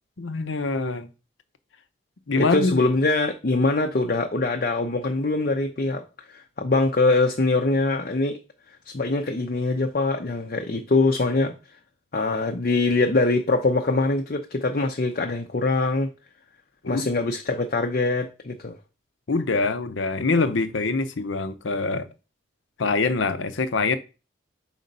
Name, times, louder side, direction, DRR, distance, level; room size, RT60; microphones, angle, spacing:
voice 1, 0.2-1.1 2.3-2.8 16.8-17.1 19.3-22.1 22.8-24.0, left 3 dB, 85° left, 0.7 m, -24 dB
voice 2, 2.4-8.4 8.9-11.5 12.1-16.1 16.9-18.8, left 3 dB, 50° left, 0.6 m, -23 dB
5.1 x 4.0 x 5.2 m
head